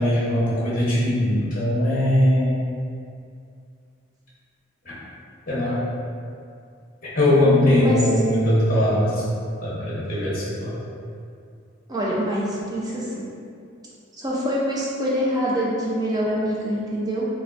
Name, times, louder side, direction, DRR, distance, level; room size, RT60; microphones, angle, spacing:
voice 1, 0.0-2.6 4.8-4.9 5.5-5.8 7.1-9.2 9.6-10.7, left 1 dB, 45° left, -9 dB, 1.0 m, -20 dB
voice 2, 7.4-8.0 11.9-13.3 14.2-17.3, equal, 20° right, -6 dB, 0.5 m, -25 dB
3.5 x 2.3 x 2.5 m, 2.4 s
head